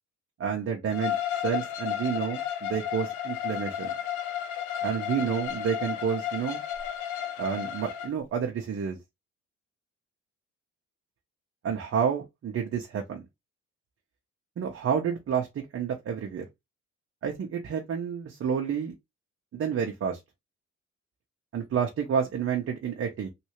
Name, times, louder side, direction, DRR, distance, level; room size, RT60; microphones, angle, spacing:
voice 1, 0.4-1.2 1.4-3.9 4.8-6.6 7.4-9.0 11.6-13.2 14.6-15.5 15.7-16.4 17.2-18.9 19.5-20.2 21.5-23.3, right 7 dB, 50° right, 0.8 m, -29 dB
Bowed string instrument, 0.9-8.1, left 10 dB, 85° left, 0.6 m, -33 dB
3.2 x 2.6 x 3.0 m
cardioid pair, 90°, 30 cm